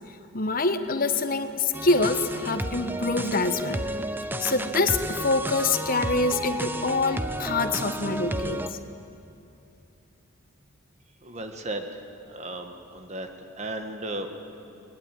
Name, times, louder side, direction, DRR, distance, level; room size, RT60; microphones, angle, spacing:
voice 1, 0.3-3.8 4.4-8.8, left 3 dB, 40° left, 9 dB, 1.1 m, -25 dB
sound 1, 1.7-8.7, right 1 dB, 10° right, 0.6 m, -32 dB
voice 2, 11.2-12.0 12.3-13.3 13.6-14.3, right 2 dB, 30° right, 6 dB, 1.5 m, -35 dB
21.0 x 20.5 x 9.3 m, 2.7 s
head